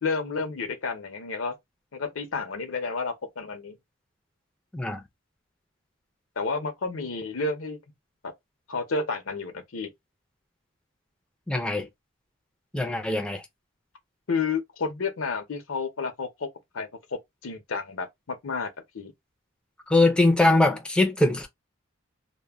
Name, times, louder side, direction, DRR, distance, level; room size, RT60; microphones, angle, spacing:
voice 1, 0.0-1.6 1.9-3.8 6.4-7.8 8.2-8.3 8.7-9.9 14.3-16.5 16.7-16.9 17.4-18.7 18.9-19.1, left 4 dB, 75° left, 0.7 m, -30 dB
voice 2, 11.5-11.9 12.7-13.4 19.9-21.5, left 2 dB, 5° left, 0.4 m, -22 dB
2.1 x 2.1 x 3.3 m
head